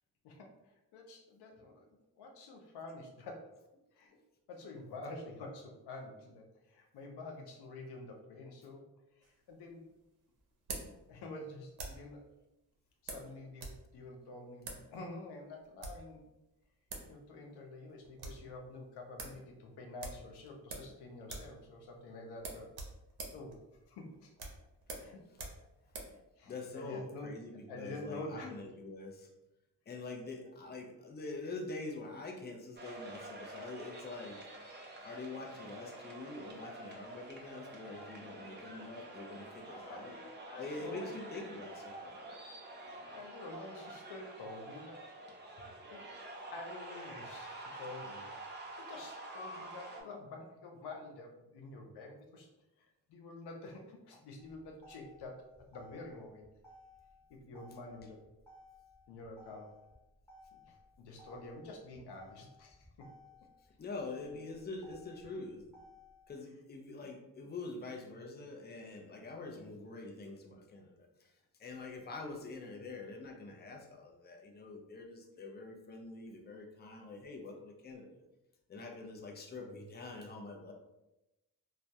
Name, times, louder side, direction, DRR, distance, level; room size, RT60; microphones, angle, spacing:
voice 1, 0.9-3.4 3.9-4.2 4.5-8.8 9.2-9.8 11.1-12.2 13.0-16.2 17.1-22.7 23.3-23.6 23.9-24.3 24.9-25.2 26.4-28.5 39.7-41.2 42.8-45.0 45.9-46.0 46.5-48.2 48.8-52.5 53.1-55.4 55.7-56.5 57.3-58.2 59.1-59.7 60.5-60.6 61.0-63.1 67.0-67.1, left 2 dB, 90° left, 2 dB, 0.5 m, -48 dB
sound 1, 9.2-12.1 13.1-13.8 14.1-14.2 14.6-14.9 15.6-16.1 16.6-16.7 16.9-17.1 17.4-17.5 17.9-18.5 18.8-18.9 19.2-19.4 20.0-21.0 21.2-21.6 21.8-22.0 22.4-26.2, right 3 dB, 65° right, 0.6 m, -46 dB
voice 2, 26.5-29.3 29.9-34.7 35.0-40.1 40.6-42.4 63.8-65.6 66.3-71.3 71.6-78.2 78.7-80.7, left 3 dB, 25° left, 2 dB, 0.4 m, -45 dB
sound 2, 32.8-50.0, right 2 dB, 30° right, 0.6 m, -48 dB
Motor vehicle (road), 54.4-66.4, left 1 dB, 5° left, 1.0 m, -59 dB
2.2 x 2.1 x 2.7 m, 0.95 s
cardioid pair, 65°, 39 cm